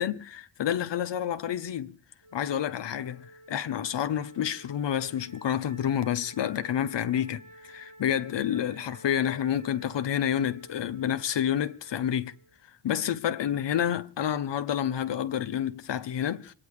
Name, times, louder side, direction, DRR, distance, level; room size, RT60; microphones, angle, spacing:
voice 1, 0.0-1.9 2.3-12.3 12.8-16.5, left 9 dB, 55° left, 1.2 m, -29 dB
Wind instrument woodwind instrument, 2.2-12.6, right 1 dB, 85° right, 2.8 m, -52 dB
25.5 x 9.9 x 5.0 m
supercardioid pair, 50°, 50 cm